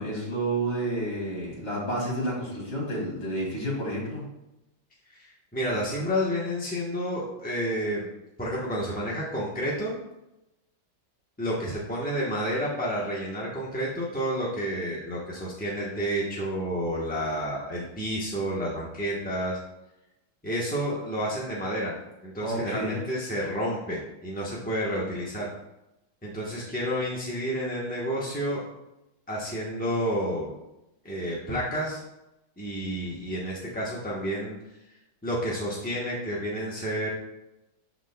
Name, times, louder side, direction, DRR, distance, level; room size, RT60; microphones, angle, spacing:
voice 1, 0.0-4.2 22.4-22.9, right 1 dB, 35° left, -4 dB, 2.5 m, -30 dB
voice 2, 5.1-8.0 8.4-10.0 11.4-19.6 20.4-21.9 22.2-25.5 26.2-28.6 29.3-30.5 31.0-32.0 32.6-34.6 35.2-37.1, equal, 10° left, -5 dB, 0.6 m, -30 dB
12.0 x 4.0 x 2.3 m, 0.92 s
omnidirectional pair, 2.1 m